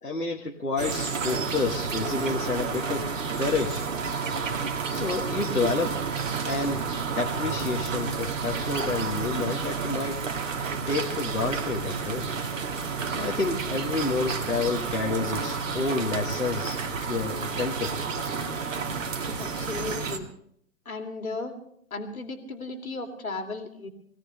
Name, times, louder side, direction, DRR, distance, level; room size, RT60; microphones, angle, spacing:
voice 1, 0.0-3.8 4.9-6.0 6.4-6.9 7.2-10.2 10.9-12.3 13.2-18.1 18.3-18.4, left 4 dB, 85° left, -1 dB, 1.7 m, -29 dB
sound 1, 0.8-20.2, right 5 dB, 60° right, 1.9 m, -30 dB
voice 2, 19.4-20.3 20.8-21.6 21.9-23.9, left 3 dB, 70° left, 5 dB, 2.7 m, -35 dB
22.5 x 17.0 x 3.2 m, 0.68 s
figure-of-eight pair, 125°, 44 cm